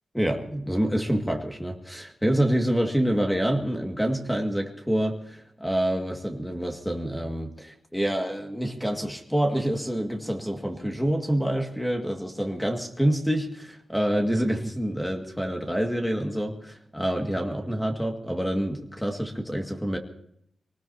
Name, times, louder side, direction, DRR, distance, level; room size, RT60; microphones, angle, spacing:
voice 1, 0.1-20.0, right 1 dB, ahead, 3 dB, 2.1 m, -27 dB
25.5 x 19.0 x 2.9 m, 0.72 s
wide cardioid pair, 110°, 0 cm